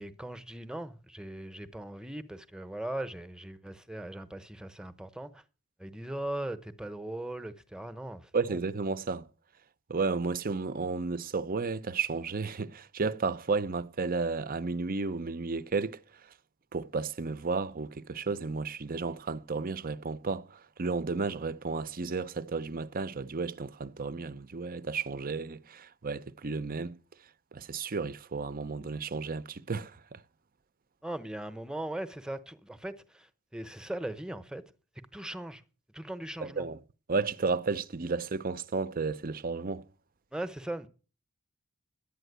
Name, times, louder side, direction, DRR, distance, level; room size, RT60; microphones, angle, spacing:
voice 1, 0.0-5.4 5.8-8.6 31.0-34.6 35.1-35.6 35.9-36.7 40.3-40.9, right 1 dB, 5° right, 0.9 m, -39 dB
voice 2, 8.3-9.3 9.9-16.0 16.7-27.0 27.5-30.2 36.4-36.8 37.1-39.8, right 4 dB, 40° right, 0.6 m, -33 dB
12.0 x 9.1 x 8.0 m
head